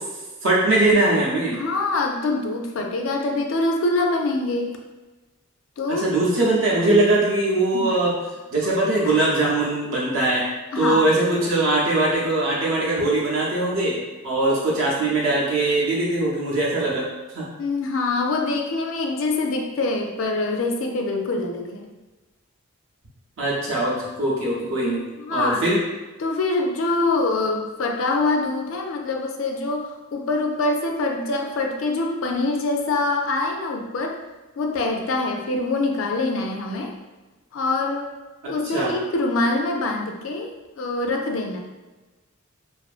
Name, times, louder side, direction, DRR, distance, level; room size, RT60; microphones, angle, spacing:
voice 1, 0.4-1.6 6.0-8.1 8.5-10.4 10.8-14.0 14.2-17.1 17.3-17.4 23.4-25.0 25.3-25.8 38.7-38.9, right 2 dB, 60° right, -5 dB, 0.5 m, -21 dB
voice 2, 1.5-4.8 5.8-6.1 7.7-8.0 9.0-9.2 10.7-11.0 17.6-21.9 25.2-25.6 26.2-34.2 34.6-36.9 37.5-38.1 38.5-41.6, left 2 dB, 60° left, 2 dB, 0.4 m, -24 dB
2.4 x 2.4 x 2.3 m, 1.2 s
head